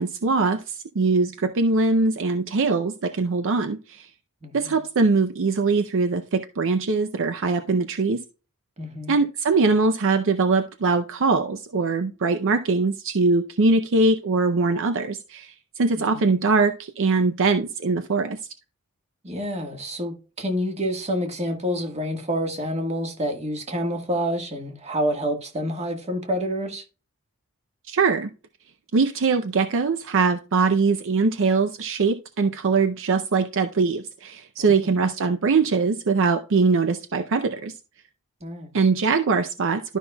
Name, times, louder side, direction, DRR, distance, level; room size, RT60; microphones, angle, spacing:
voice 1, 0.0-4.1 4.5-8.2 9.1-18.4 27.9-28.3 28.9-37.7 38.7-40.0, right 4 dB, 60° right, 0.6 m, -22 dB
voice 2, 4.4-4.8 8.8-9.2 16.0-16.2 19.2-26.8 34.6-34.9 38.4-38.9, equal, 30° right, 1.5 m, -28 dB
12.5 x 5.5 x 2.3 m
head